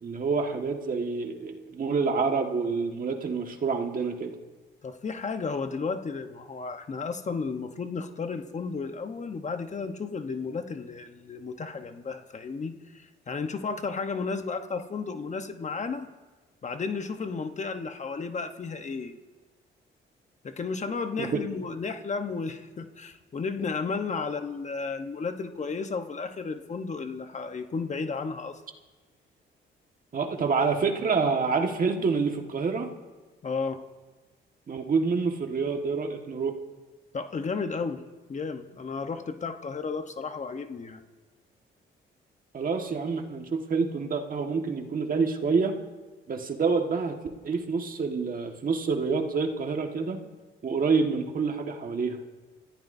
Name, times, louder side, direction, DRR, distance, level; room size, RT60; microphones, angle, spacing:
voice 1, 0.0-4.3 21.2-21.4 30.1-32.9 34.7-36.5 42.5-45.7 46.3-47.2 47.4-50.2 50.6-52.2, right 4 dB, 45° right, 4 dB, 1.7 m, -27 dB
voice 2, 4.8-16.1 16.6-19.1 20.4-28.6 33.4-33.8 37.1-38.0 38.3-41.0, left 4 dB, 35° left, 7 dB, 1.1 m, -33 dB
29.5 x 15.0 x 2.7 m, 1.3 s
cardioid pair, 90°, 20 cm